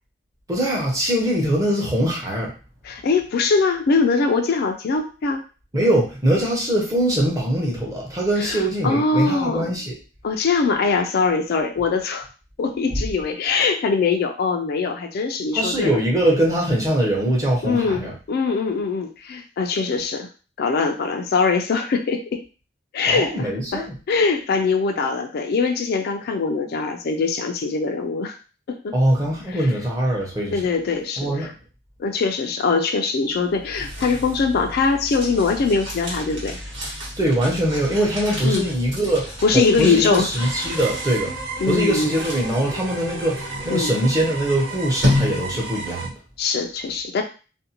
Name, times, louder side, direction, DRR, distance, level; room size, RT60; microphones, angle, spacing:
voice 1, 0.5-2.5 5.7-9.9 15.5-18.1 23.0-23.9 28.9-30.6 31.2-31.5 37.2-39.3 39.5-41.3 41.7-46.1, right 1 dB, 20° right, -3 dB, 0.8 m, -22 dB
voice 2, 2.8-5.4 8.4-9.7 10.2-12.3 12.6-16.0 17.6-20.3 20.6-22.4 22.9-28.4 28.7-28.9 29.5-29.7 30.5-31.5 32.0-36.6 38.4-38.7 39.4-40.3 41.6-42.1 43.7-43.9 46.4-47.2, left 4 dB, 55° left, 5 dB, 0.3 m, -22 dB
sound 1, 33.4-45.9, left 1 dB, 85° right, 1.4 m, -31 dB
sound 2, 40.4-46.1, right 4 dB, 70° right, 0.7 m, -33 dB
2.6 x 2.1 x 2.8 m, 0.35 s
head